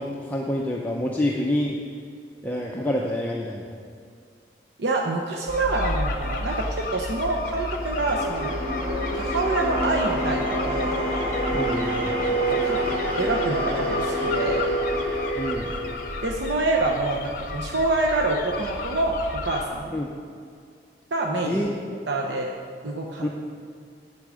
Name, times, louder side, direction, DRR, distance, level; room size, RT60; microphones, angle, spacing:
voice 1, 0.0-1.7 2.4-3.7 11.5-12.1 15.4-15.7 19.9-20.1 21.4-22.0 23.2-23.3, left 1 dB, 10° left, -2 dB, 0.6 m, -27 dB
voice 2, 4.8-8.5 9.1-11.0 12.3-12.8 13.2-14.7 16.2-19.2 19.4-20.0 21.1-21.6 22.1-22.5 22.8-23.3, right 2 dB, 80° right, 0 dB, 0.8 m, -26 dB
sound 1, 5.5-19.7, left 3 dB, 45° left, 0.9 m, -33 dB
sound 2, 6.5-16.9, right 1 dB, 30° right, 2.5 m, -28 dB
8.4 x 8.3 x 6.2 m, 2.2 s
head